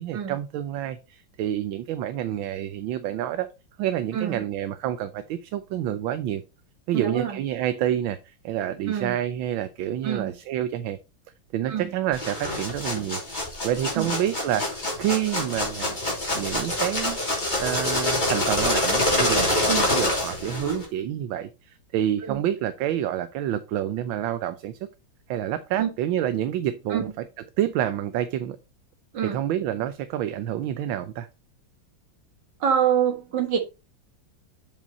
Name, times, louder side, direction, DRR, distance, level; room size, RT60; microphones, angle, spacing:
voice 1, 0.0-3.5 3.8-6.4 6.9-11.0 11.5-13.2 13.6-16.0 16.3-24.8 25.3-27.3 27.6-28.6 29.2-31.3, right 11 dB, 80° right, 1.4 m, -28 dB
voice 2, 4.1-4.4 6.9-7.4 8.9-9.2 10.0-10.3 11.7-11.9 13.9-14.1 19.7-19.9 22.2-22.4 25.8-25.9 26.9-27.1 29.1-29.4 32.6-33.6, right 8 dB, 60° right, 2.2 m, -26 dB
sound 1, 12.1-20.8, left 1 dB, 20° left, 3.1 m, -26 dB
7.4 x 5.6 x 4.1 m
omnidirectional pair, 2.2 m